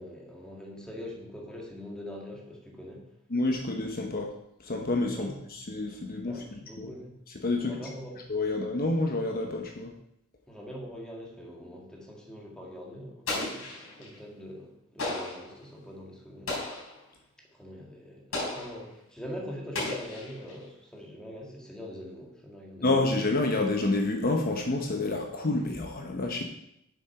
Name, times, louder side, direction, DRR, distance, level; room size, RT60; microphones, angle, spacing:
voice 1, 0.0-3.1 5.1-5.4 6.2-7.2 7.6-8.2 10.5-16.5 17.5-23.1, equal, 5° left, -2 dB, 1.9 m, -43 dB
voice 2, 3.3-4.3 4.6-6.9 7.4-7.7 8.3-9.9 22.8-26.4, left 2 dB, 45° left, 2 dB, 1.0 m, -28 dB
Explosion, 13.3-14.2 15.0-15.5 16.5-17.0 18.3-18.9 19.7-20.6, left 2 dB, 75° left, 3.9 m, -34 dB
7.5 x 7.3 x 5.9 m, 0.79 s
head